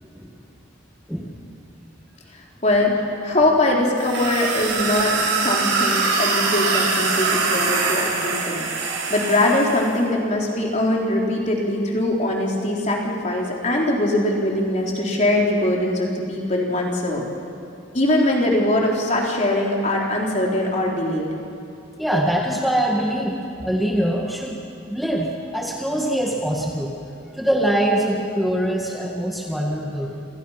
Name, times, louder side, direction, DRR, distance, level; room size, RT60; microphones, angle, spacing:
voice 1, 2.6-8.7 9.1-17.2 17.9-21.3, left 1 dB, 35° left, -1 dB, 3.9 m, -22 dB
sound 1, 4.0-9.9, right 4 dB, 85° right, 6.8 m, -23 dB
voice 2, 22.0-24.6 24.9-26.9 27.3-30.2, right 1 dB, ahead, -2 dB, 1.7 m, -23 dB
28.0 x 28.0 x 5.9 m, 2.7 s
head